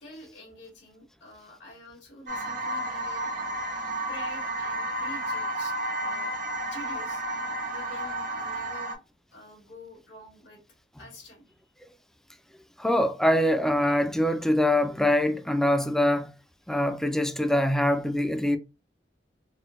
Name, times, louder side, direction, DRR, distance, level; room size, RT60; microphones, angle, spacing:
voice 1, 0.0-3.3 4.1-6.4 6.7-7.2 7.7-9.0 9.3-10.6 11.0-11.5, left 1 dB, 80° left, 2.1 m, -46 dB
sound 1, 2.3-9.0, right 1 dB, 50° right, 0.7 m, -32 dB
voice 2, 12.8-16.3 16.7-18.6, left 1 dB, ahead, 0.3 m, -24 dB
4.4 x 2.2 x 2.5 m
head